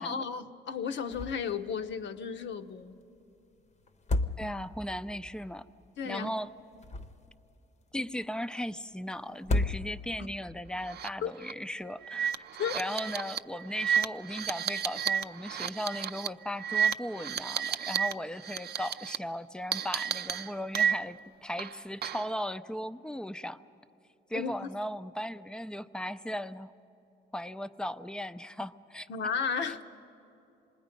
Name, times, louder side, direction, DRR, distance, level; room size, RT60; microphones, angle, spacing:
voice 1, 0.0-3.0 6.0-6.3 11.2-11.3 12.6-12.7 24.3-24.5 29.1-29.8, left 6 dB, 65° left, 9 dB, 0.9 m, -33 dB
sound 1, 1.1-1.6 1.9-2.0 3.9-4.9 6.6-7.5 9.3-10.3, left 2 dB, 35° left, 0.9 m, -32 dB
voice 2, 4.4-5.7 6.0-6.5 7.9-12.3 12.7-23.6 24.3-26.7 27.3-29.1 29.7-29.8, equal, 5° left, 13 dB, 0.5 m, -37 dB
sound 2, 10.9-11.1 11.4-11.5 12.0-18.1 18.4-19.2 19.7-21.2 21.6-22.3, right 8 dB, 55° right, 0.5 m, -31 dB
27.5 x 20.0 x 5.2 m, 2.8 s
cardioid pair, 90°, 20 cm